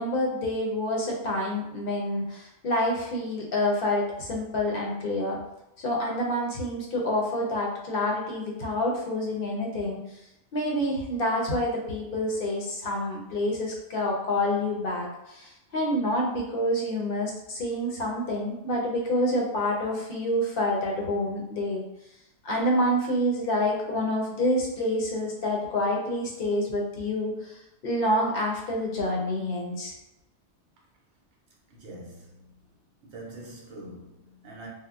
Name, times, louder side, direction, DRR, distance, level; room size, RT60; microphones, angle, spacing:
voice 1, 0.0-5.4 5.8-10.0 10.5-21.8 22.4-29.9, left 1 dB, 55° left, 0.8 m, -27 dB
voice 2, 31.7-32.6 33.0-34.7, right 1 dB, 75° right, 0.9 m, -44 dB
3.5 x 2.1 x 2.3 m
omnidirectional pair, 1.2 m